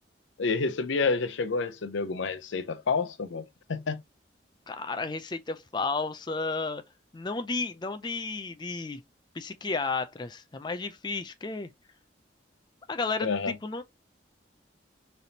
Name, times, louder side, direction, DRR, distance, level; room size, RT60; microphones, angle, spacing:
voice 1, 0.4-4.0 13.2-13.5, left 4 dB, 85° left, 0.6 m, -29 dB
voice 2, 4.7-6.8 7.1-9.0 9.3-11.7 12.9-13.3 13.6-13.8, left 3 dB, 25° left, 0.4 m, -32 dB
4.1 x 3.4 x 2.8 m
head